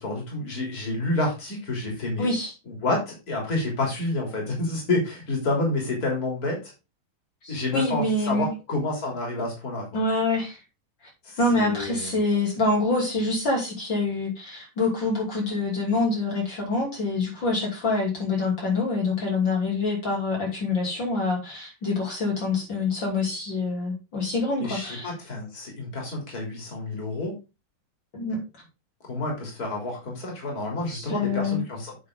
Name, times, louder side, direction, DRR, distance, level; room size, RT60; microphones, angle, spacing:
voice 1, 0.0-2.3 2.7-6.7 7.5-9.9 11.2-12.2 24.6-27.3 29.1-32.0, left 2 dB, 45° left, 0 dB, 3.8 m, -29 dB
voice 2, 2.2-2.5 7.4-8.5 9.9-10.6 11.4-25.1 28.1-28.4 30.9-31.6, left 3 dB, 60° left, -2 dB, 3.7 m, -26 dB
8.7 x 6.6 x 3.8 m, 0.27 s
omnidirectional pair, 2.3 m